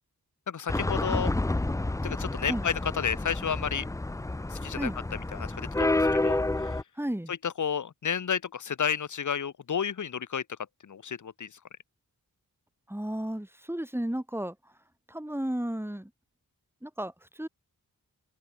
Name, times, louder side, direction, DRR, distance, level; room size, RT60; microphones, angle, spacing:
voice 1, 0.5-1.3 2.0-3.9 4.5-4.9 5.3-6.8 7.3-10.4 10.8-11.6, left 7 dB, 55° left, 0.8 m, -31 dB
sound 1, 0.7-6.8, left 2 dB, 10° left, 0.4 m, -29 dB
voice 2, 7.0-7.3 12.9-14.7 15.1-16.1 16.8-17.5, right 1 dB, 5° right, 2.6 m, -33 dB
open air
cardioid pair, 55°, 37 cm